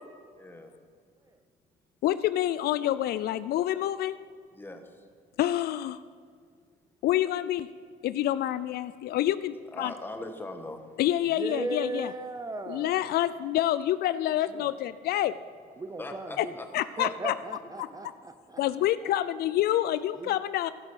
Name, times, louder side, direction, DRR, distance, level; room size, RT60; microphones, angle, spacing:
voice 1, 0.3-0.7 4.5-5.0 9.7-11.0 16.0-16.7 17.9-18.0, left 2 dB, 10° left, 5 dB, 1.4 m, -41 dB
voice 2, 2.0-4.2 5.4-6.0 7.0-7.7 8.0-9.9 11.0-12.1 12.7-15.4 16.4-16.5 16.7-17.3 17.8-17.9 18.6-20.7, left 13 dB, 65° left, 15 dB, 0.4 m, -27 dB
voice 3, 11.4-13.0 14.5-14.7 15.8-16.5 17.0-18.6 20.2-20.4, right 2 dB, 20° right, 9 dB, 0.7 m, -36 dB
16.0 x 6.3 x 5.6 m, 2.1 s
cardioid pair, 110°, 17 cm